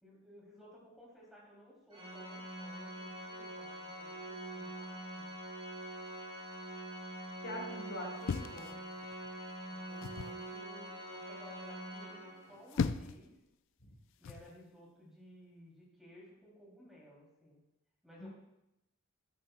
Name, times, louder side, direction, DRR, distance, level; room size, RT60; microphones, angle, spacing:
voice 1, 0.0-5.3 9.4-13.3 14.2-17.6 18.0-18.3, equal, ahead, -5 dB, 2.7 m, -57 dB
Organ, 1.9-12.7, right 1 dB, 25° right, 3.2 m, -45 dB
voice 2, 7.4-8.7 18.2-18.3, left 1 dB, 80° left, -2 dB, 3.6 m, -43 dB
sound 1, 8.2-9.3 10.0-10.4 12.4-13.3 14.2-14.5, left 5 dB, 65° left, 0.3 m, -37 dB
13.5 x 8.8 x 2.2 m, 0.88 s
head